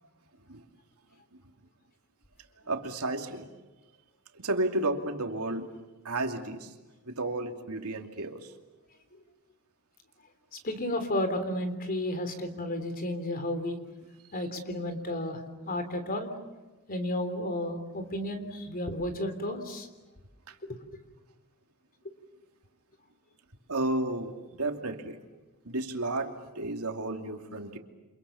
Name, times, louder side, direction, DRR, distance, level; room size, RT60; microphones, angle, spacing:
voice 1, 2.7-3.5 4.3-6.7 7.0-8.5 20.5-20.6 23.7-25.2 25.6-27.8, right 2 dB, 85° right, 4 dB, 2.8 m, -32 dB
voice 2, 10.5-13.8 14.3-15.4 15.7-16.3 16.9-19.9 20.7-20.8, left 1 dB, 40° left, 8 dB, 3.6 m, -32 dB
29.5 x 27.0 x 7.2 m, 1.2 s
head